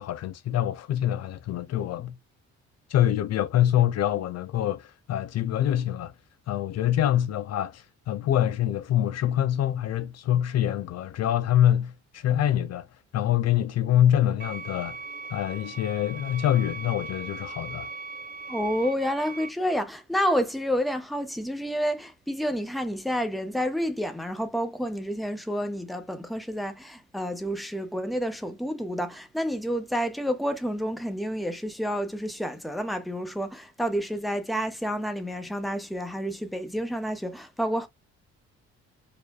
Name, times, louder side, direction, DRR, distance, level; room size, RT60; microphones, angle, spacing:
voice 1, 0.0-2.2 2.9-6.1 6.5-12.9 13.1-15.0 15.3-17.9, left 11 dB, 60° left, 0.4 m, -25 dB
sound 1, 14.4-19.5, right 4 dB, 30° right, 0.6 m, -39 dB
voice 2, 18.5-37.9, equal, ahead, 0.9 m, -29 dB
5.0 x 2.4 x 2.3 m
cardioid pair, 90°, 30 cm